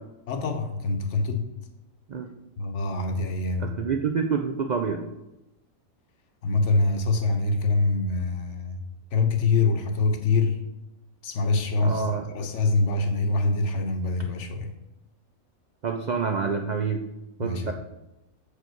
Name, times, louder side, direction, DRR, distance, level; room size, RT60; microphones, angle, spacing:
voice 1, 0.3-1.5 2.6-3.8 6.4-8.8 9.1-10.6 11.2-14.7 17.4-17.7, left 3 dB, 60° left, 6 dB, 1.0 m, -25 dB
voice 2, 3.6-5.0 11.8-12.3 15.8-17.0 17.4-17.7, right 5 dB, 80° right, 4 dB, 0.4 m, -27 dB
6.9 x 4.9 x 4.5 m, 0.95 s
omnidirectional pair, 1.5 m